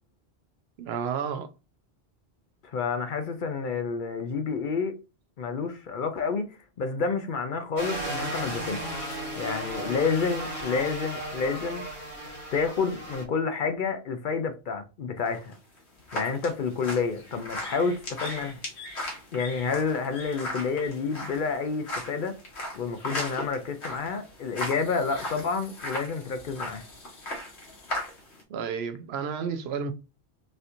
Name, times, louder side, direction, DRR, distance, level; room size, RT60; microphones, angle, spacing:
voice 1, 0.8-1.5 28.5-29.9, right 6 dB, 75° right, 0.8 m, -31 dB
voice 2, 2.6-4.9 5.4-6.5 6.8-8.9 9.4-11.8 12.5-15.5 16.1-18.6 19.3-22.4 22.8-26.8, left 5 dB, 60° left, 0.6 m, -29 dB
sound 1, 7.8-13.2, right 1 dB, 30° left, 1.5 m, -35 dB
sound 2, 15.3-28.4, left 1 dB, 90° left, 1.5 m, -37 dB
4.1 x 2.8 x 2.5 m
omnidirectional pair, 1.1 m